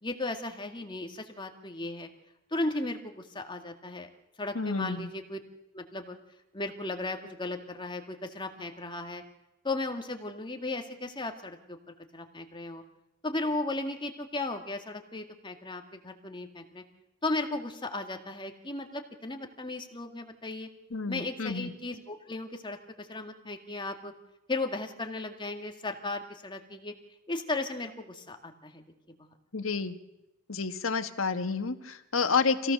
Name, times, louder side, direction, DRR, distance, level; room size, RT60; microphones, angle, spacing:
voice 1, 0.0-2.1 2.5-4.1 4.4-5.4 5.7-6.2 6.5-9.2 9.6-11.8 12.1-12.8 13.2-16.8 17.2-20.7 21.1-24.1 24.5-26.9 27.3-28.8, left 2 dB, 25° left, 4 dB, 2.0 m, -35 dB
voice 2, 4.5-5.1 20.9-21.7 29.5-29.9 30.5-32.7, left 4 dB, 75° left, 8 dB, 1.5 m, -29 dB
26.5 x 17.0 x 6.7 m, 0.94 s
head